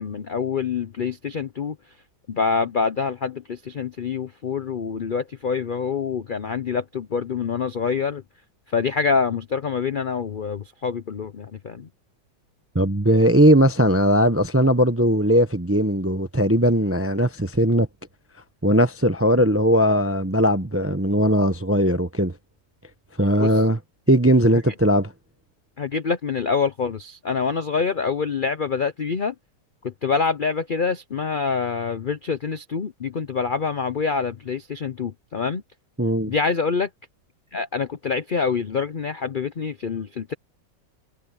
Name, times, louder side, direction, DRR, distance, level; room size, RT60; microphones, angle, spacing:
voice 1, 0.0-1.8 2.3-8.2 8.7-11.9 23.4-23.6 25.8-29.3 29.8-35.6 36.3-36.9 37.5-40.3, left 5 dB, 60° left, 0.5 m, -26 dB
voice 2, 12.7-17.9 18.6-22.3 23.2-23.8 24.1-25.1 36.0-36.3, equal, 15° right, 0.4 m, -19 dB
omnidirectional pair, 1.9 m